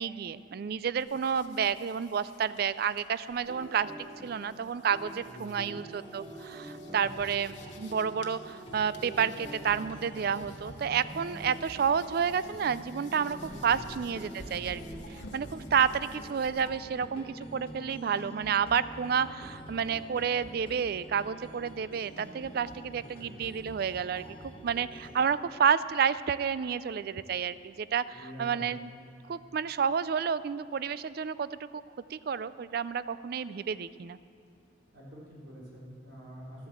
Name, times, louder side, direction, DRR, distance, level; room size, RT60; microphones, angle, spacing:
voice 1, 0.0-14.8 15.1-28.8 29.3-31.8 32.1-34.2, right 7 dB, 55° right, 16 dB, 0.3 m, -30 dB
sound 1, 1.0-16.7, left 2 dB, 70° left, 1.1 m, -54 dB
sound 2, 3.4-16.5, equal, 35° right, 1.9 m, -48 dB
voice 2, 5.1-5.7 13.4-13.9 14.3-14.7 22.9-23.3 28.1-28.8 34.9-36.7, equal, 80° right, -5 dB, 3.8 m, -47 dB
sound 3, 5.7-25.2, right 1 dB, 30° left, 1.3 m, -47 dB
13.0 x 8.6 x 7.3 m, 2.6 s
head